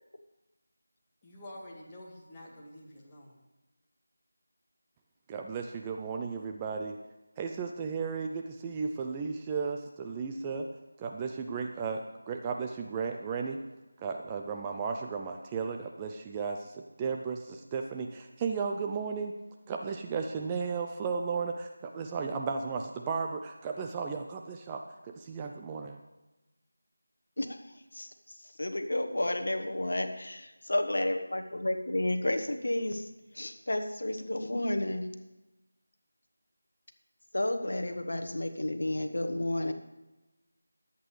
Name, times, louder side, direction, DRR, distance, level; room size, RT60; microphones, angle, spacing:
voice 1, 1.2-3.4, left 1 dB, 15° left, -5 dB, 1.9 m, -48 dB
voice 2, 5.3-7.0 7.4-10.7 11.0-13.6 14.0-19.3 19.7-26.0, right 5 dB, 15° right, 3 dB, 0.5 m, -35 dB
voice 3, 27.9-33.0 33.3-35.1 37.3-39.7, left 1 dB, 70° left, 8 dB, 1.1 m, -31 dB
22.0 x 8.3 x 3.2 m, 1.0 s
figure-of-eight pair, 165°, 0 cm